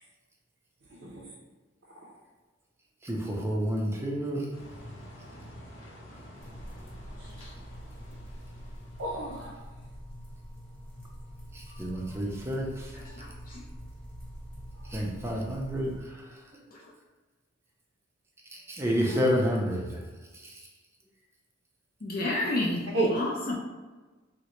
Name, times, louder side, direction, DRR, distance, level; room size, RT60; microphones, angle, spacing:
voice 1, 0.9-1.3 1.9-2.1 7.2-7.5 9.0-9.6 22.9-23.1, right 2 dB, 65° right, -4 dB, 0.5 m, -32 dB
voice 2, 3.0-4.5 11.5-13.0 14.9-16.4 18.5-20.0 20.3-20.6, equal, 15° right, -1 dB, 0.4 m, -30 dB
sound 1, 4.5-9.5, equal, 90° left, 0.7 m, -49 dB
sound 2, 6.4-16.0, equal, 5° left, 0.8 m, -45 dB
voice 3, 12.9-13.6 16.7-16.9 22.0-23.6, left 2 dB, 45° left, -2 dB, 0.4 m, -31 dB
3.7 x 2.1 x 2.9 m, 1.3 s
head